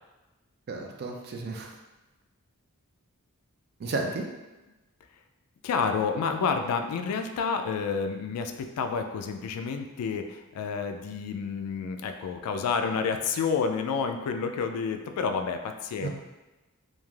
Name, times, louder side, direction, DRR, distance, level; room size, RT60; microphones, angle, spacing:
voice 1, 0.7-1.7 3.8-4.3 16.0-16.1, right 3 dB, 45° right, 2 dB, 0.4 m, -33 dB
voice 2, 5.6-16.1, left 5 dB, 80° left, 10 dB, 0.3 m, -29 dB
3.1 x 2.5 x 2.3 m, 1.1 s
head